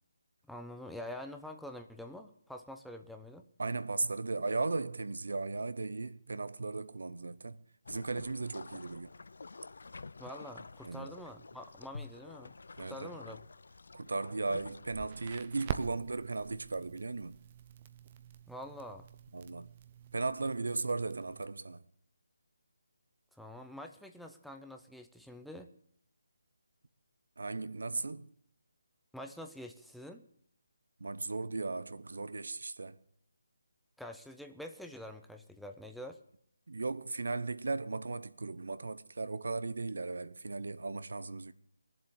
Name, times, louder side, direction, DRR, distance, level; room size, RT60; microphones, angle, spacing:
voice 1, 0.5-3.4 10.2-12.5 12.9-13.4 18.5-19.0 23.3-25.7 29.1-30.2 34.0-36.2, left 1 dB, ahead, 0.7 m, -46 dB
voice 2, 3.6-7.6 7.9-9.1 10.8-11.2 12.8-13.1 13.9-17.4 19.3-19.7 20.1-21.8 27.4-28.3 31.0-33.0 36.7-41.5, right 3 dB, 65° right, 0.8 m, -36 dB
sound 1, 7.8-14.9, left 3 dB, 65° left, 0.6 m, -49 dB
Crackle, 14.9-21.4, right 9 dB, 30° right, 0.9 m, -45 dB
20.0 x 7.7 x 8.6 m
figure-of-eight pair, 150°, 0 cm